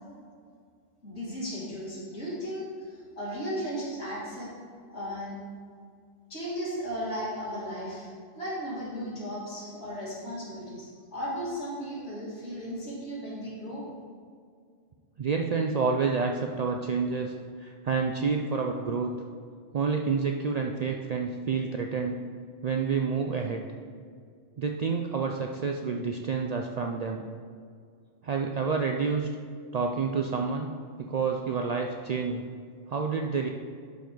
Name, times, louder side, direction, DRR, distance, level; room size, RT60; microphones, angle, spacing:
voice 1, 1.0-4.5 4.9-5.4 6.3-8.1 8.3-13.8, equal, 60° left, -7 dB, 2.8 m, -35 dB
voice 2, 15.2-17.3 17.6-19.1 19.7-22.2 22.6-23.6 24.6-27.2 28.2-29.3 29.7-30.7 31.0-32.4 32.9-33.5, right 5 dB, 85° right, 2 dB, 0.3 m, -28 dB
11.0 x 5.3 x 3.9 m, 2.2 s
omnidirectional pair, 1.3 m